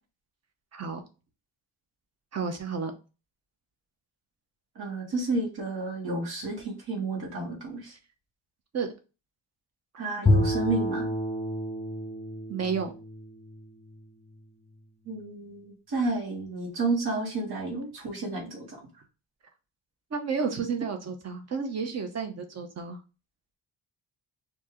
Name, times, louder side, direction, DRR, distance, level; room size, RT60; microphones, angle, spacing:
voice 1, 0.7-1.0 2.3-2.9 8.7-8.9 12.5-12.9 20.1-23.0, right 5 dB, 35° right, 0.8 m, -31 dB
voice 2, 4.8-7.9 10.0-11.1 15.1-18.8, right 3 dB, 55° right, 1.8 m, -31 dB
Bowed string instrument, 10.3-14.5, left 1 dB, 15° left, 0.4 m, -29 dB
4.3 x 2.8 x 3.0 m
wide cardioid pair, 175°, 44 cm